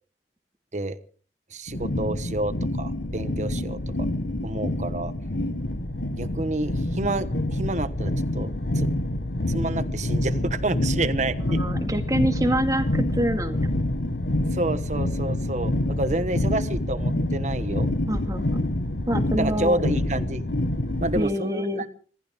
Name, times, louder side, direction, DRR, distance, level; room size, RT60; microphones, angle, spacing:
voice 1, 1.5-4.1 4.4-5.1 6.2-8.9 9.5-11.6 14.5-17.9 19.4-20.4 21.0-21.9, right 2 dB, 40° right, 12 dB, 1.2 m, -29 dB
sound 1, 1.7-21.2, left 1 dB, 80° left, 1.5 m, -27 dB
voice 2, 11.5-13.6 18.1-18.6 19.1-19.8 21.2-21.8, equal, 20° right, 5 dB, 2.2 m, -26 dB
26.0 x 15.0 x 3.7 m, 0.43 s
head